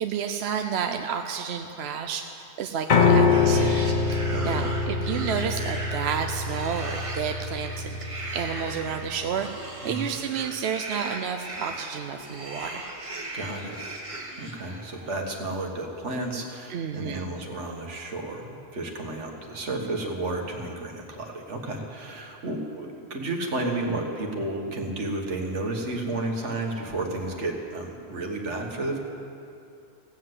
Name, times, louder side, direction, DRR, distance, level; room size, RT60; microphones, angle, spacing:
voice 1, 0.0-12.8 16.7-17.3, right 7 dB, 70° right, 6 dB, 0.8 m, -31 dB
Piano, 2.9-9.1, left 4 dB, 45° left, 0.8 m, -24 dB
sound 1, 3.0-15.1, right 2 dB, 30° right, 1.3 m, -38 dB
voice 2, 4.3-4.7 9.8-10.1 13.3-13.8 14.4-29.0, right 2 dB, 90° right, 1 dB, 1.8 m, -32 dB
16.5 x 7.7 x 7.8 m, 2.6 s
omnidirectional pair, 1.2 m